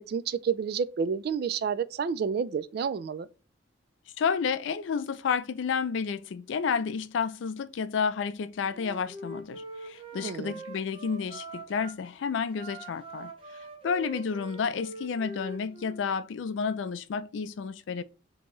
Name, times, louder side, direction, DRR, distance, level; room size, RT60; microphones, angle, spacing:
voice 1, 0.1-3.3 10.1-10.6, right 6 dB, 55° right, 0.3 m, -30 dB
voice 2, 4.2-13.3 13.8-18.0, left 6 dB, 75° left, 0.4 m, -31 dB
Wind instrument woodwind instrument, 8.6-11.9 12.5-16.0, right 2 dB, 30° right, 0.8 m, -43 dB
4.3 x 2.9 x 3.0 m
head